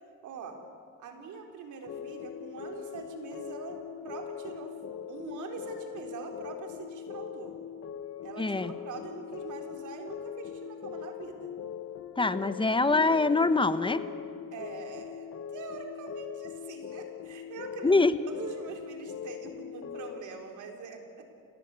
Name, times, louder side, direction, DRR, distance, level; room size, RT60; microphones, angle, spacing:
voice 1, 0.2-0.6 1.0-4.7 5.1-7.6 8.2-11.5 14.5-18.0 18.3-21.4, right 5 dB, 75° right, 3 dB, 3.9 m, -43 dB
sound 1, 1.9-20.2, left 9 dB, 55° left, 1.3 m, -41 dB
voice 2, 8.4-8.7 12.2-14.0 17.8-18.1, left 3 dB, 15° left, 12 dB, 1.1 m, -24 dB
29.5 x 17.5 x 8.3 m, 2.3 s
cardioid pair, 90°, 30 cm